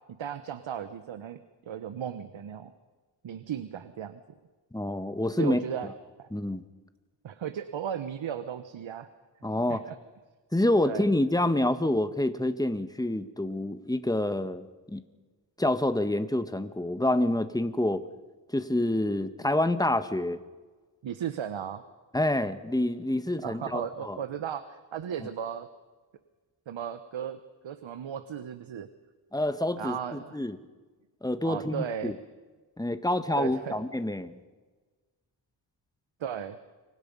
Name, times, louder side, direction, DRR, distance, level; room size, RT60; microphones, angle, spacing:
voice 1, 0.1-2.7 3.2-4.2 5.4-5.9 6.2-6.3 7.2-9.1 9.7-10.0 10.8-11.0 21.0-21.8 23.4-25.7 26.7-28.9 29.8-30.4 31.4-32.2 33.4-33.8 36.2-36.6, right 9 dB, 85° right, 11 dB, 1.2 m, -36 dB
voice 2, 4.7-5.6 6.3-6.6 9.4-9.8 10.5-15.0 15.6-18.0 18.5-20.4 22.1-24.2 29.3-30.6 31.2-32.1 32.8-34.4, left 1 dB, 10° left, 10 dB, 1.6 m, -27 dB
29.0 x 25.0 x 5.5 m, 1.3 s
cardioid pair, 80°, 45 cm